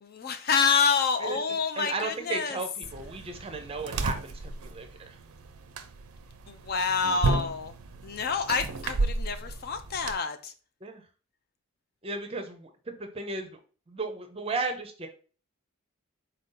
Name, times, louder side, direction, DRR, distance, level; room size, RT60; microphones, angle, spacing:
voice 1, 0.0-2.6 6.5-7.7 8.0-10.5, left 5 dB, 45° left, 0.4 m, -28 dB
voice 2, 1.8-5.2 10.8-11.0 12.0-13.6 13.9-15.1, right 3 dB, 25° right, 0.5 m, -35 dB
sound 1, 2.8-10.1, right 3 dB, 90° right, 0.5 m, -33 dB
4.2 x 2.6 x 3.8 m
head